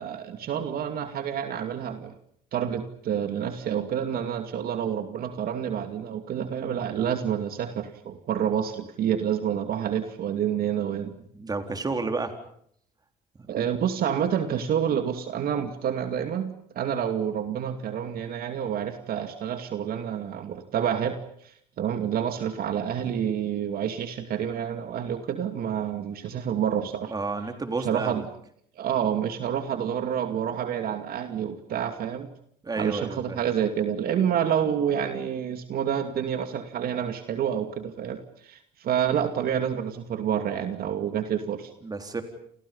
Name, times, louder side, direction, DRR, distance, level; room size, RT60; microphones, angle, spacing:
voice 1, 0.0-2.1 2.5-11.1 13.5-21.2 21.8-27.1 27.9-28.2 28.8-32.3 32.7-41.7, right 9 dB, 60° right, 7 dB, 2.4 m, -28 dB
voice 2, 11.3-12.3 27.1-28.2 32.6-33.4 41.8-42.2, right 3 dB, 20° right, 6 dB, 4.0 m, -30 dB
30.0 x 27.5 x 5.6 m, 0.68 s
cardioid pair, 110°, 17 cm